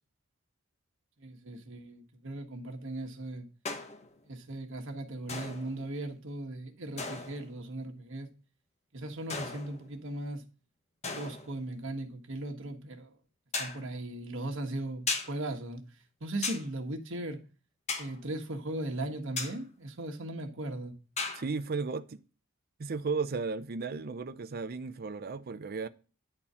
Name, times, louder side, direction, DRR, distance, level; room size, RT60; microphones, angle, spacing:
voice 1, 1.2-3.5 4.2-8.3 8.9-10.4 11.2-13.1 13.6-15.8 16.2-17.4 18.0-20.9, right 1 dB, 60° right, 1.5 m, -38 dB
sound 1, 3.6-4.1 5.3-5.9 7.0-7.5 9.3-10.0 11.0-11.6 13.5-13.9 15.1-15.4 16.4-16.7 17.9-18.2 19.4-19.6 21.2-21.4, left 4 dB, 30° left, 1.2 m, -36 dB
voice 2, 21.4-22.2 22.8-25.9, right 4 dB, 45° right, 0.5 m, -34 dB
10.0 x 4.4 x 5.5 m
head